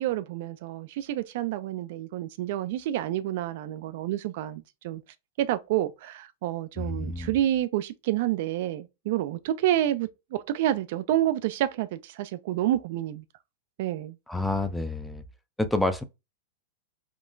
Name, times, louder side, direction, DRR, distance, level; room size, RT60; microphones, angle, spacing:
voice 1, 0.0-5.0 5.4-13.2 13.8-14.2, right 13 dB, 60° right, 0.4 m, -29 dB
voice 2, 6.8-7.3 14.3-15.2 15.6-16.0, left 2 dB, 5° left, 0.4 m, -28 dB
3.6 x 2.3 x 2.5 m
hypercardioid pair, 120°, 0 cm